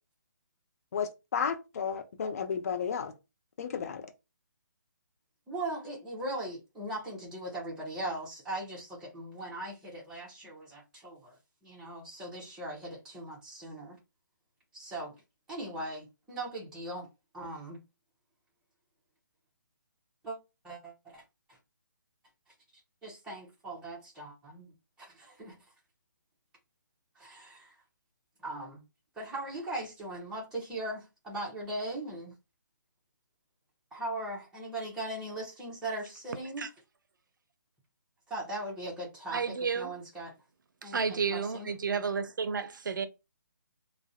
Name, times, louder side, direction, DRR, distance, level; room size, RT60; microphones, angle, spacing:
voice 1, 0.9-3.1 3.6-4.1, left 6 dB, 45° left, 0.4 m, -33 dB
voice 2, 5.5-11.3 11.6-14.0 14.7-15.1 15.5-17.1 17.3-17.8 20.2-20.4 20.6-21.2 21.5-21.6 23.0-25.5 27.1-27.8 28.4-28.8 29.1-32.3 33.9-36.7 38.3-40.3 40.8-41.7, right 1 dB, 5° right, 0.6 m, -39 dB
voice 3, 39.3-39.9 40.8-43.1, right 5 dB, 70° right, 0.5 m, -31 dB
2.3 x 2.0 x 2.6 m
figure-of-eight pair, 150°, 11 cm